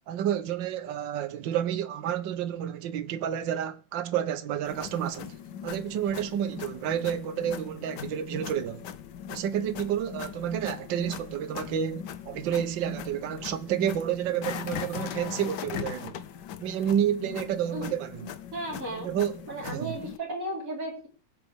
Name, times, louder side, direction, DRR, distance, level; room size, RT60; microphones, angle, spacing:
voice 1, 0.1-5.3 5.6-8.8 9.3-16.2 16.6-18.4 18.9-20.0, right 9 dB, 75° right, 1.6 m, -30 dB
sound 1, 4.6-20.2, left 9 dB, 70° left, 1.4 m, -40 dB
voice 2, 18.5-19.1 19.5-21.1, right 1 dB, 45° right, 4.3 m, -34 dB
22.5 x 8.2 x 3.6 m
omnidirectional pair, 2.1 m